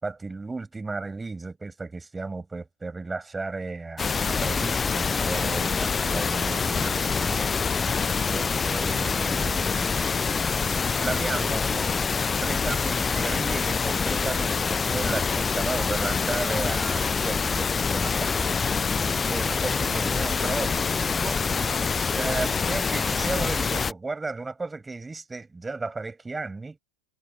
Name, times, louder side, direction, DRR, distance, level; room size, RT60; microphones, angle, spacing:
voice 1, 0.0-7.8 8.3-10.0 10.9-21.8 22.1-26.8, right 3 dB, 10° right, 6.5 m, -34 dB
sound 1, 4.0-23.9, left 5 dB, 15° left, 0.4 m, -25 dB
figure-of-eight pair, 90°, 0 cm